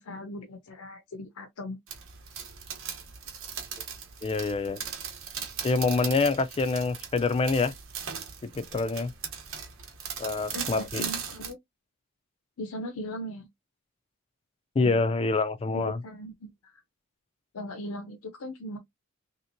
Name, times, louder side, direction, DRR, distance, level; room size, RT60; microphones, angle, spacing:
voice 1, 0.0-1.8 10.5-11.6 12.6-13.5 15.7-16.8 17.5-18.8, equal, 80° left, 0.6 m, -39 dB
sound 1, 1.9-11.5, right 7 dB, 65° right, 0.9 m, -39 dB
voice 2, 4.2-4.8 5.6-7.7 8.4-9.1 10.2-11.1 14.8-16.0, left 3 dB, 25° left, 0.3 m, -26 dB
3.3 x 2.9 x 2.6 m
head